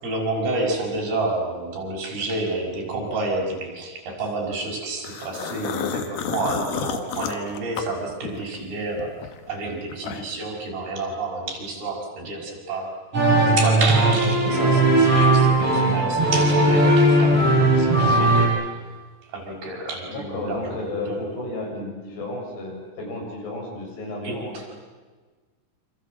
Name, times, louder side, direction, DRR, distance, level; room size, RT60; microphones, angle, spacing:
voice 1, 0.0-13.0 13.5-18.6 19.3-21.2 24.2-24.6, right 2 dB, 65° right, -1 dB, 7.5 m, -29 dB
sound 1, 5.0-8.6 9.0-10.5, left 8 dB, 65° left, 3.1 m, -31 dB
sound 2, 13.1-18.5, right 2 dB, 35° right, 9.0 m, -18 dB
voice 2, 20.1-24.7, left 2 dB, 85° left, 0 dB, 9.0 m, -33 dB
28.0 x 26.5 x 7.7 m, 1.4 s
omnidirectional pair, 4.8 m